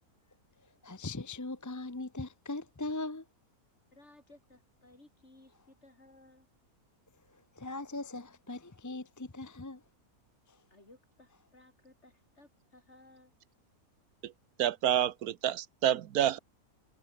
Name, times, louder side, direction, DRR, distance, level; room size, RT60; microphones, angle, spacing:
voice 1, 0.8-3.2 7.6-9.8, left 2 dB, 15° left, 0.7 m, -39 dB
voice 2, 3.9-6.5 10.7-13.3, left 2 dB, 50° left, 5.4 m, -59 dB
voice 3, 14.6-16.4, right 11 dB, 85° right, 1.3 m, -28 dB
omnidirectional pair, 1.6 m